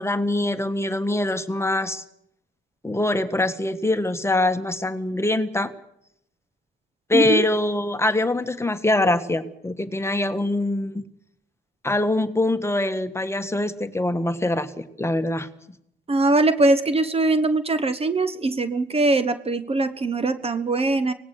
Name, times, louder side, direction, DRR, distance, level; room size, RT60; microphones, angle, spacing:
voice 1, 0.0-2.0 2.8-5.7 7.1-11.0 11.8-15.5, left 2 dB, 15° left, 9 dB, 1.5 m, -23 dB
voice 2, 7.1-7.5 16.1-21.1, right 2 dB, 30° right, 11 dB, 1.2 m, -21 dB
24.5 x 18.5 x 6.5 m, 0.76 s
cardioid pair, 90°, 20 cm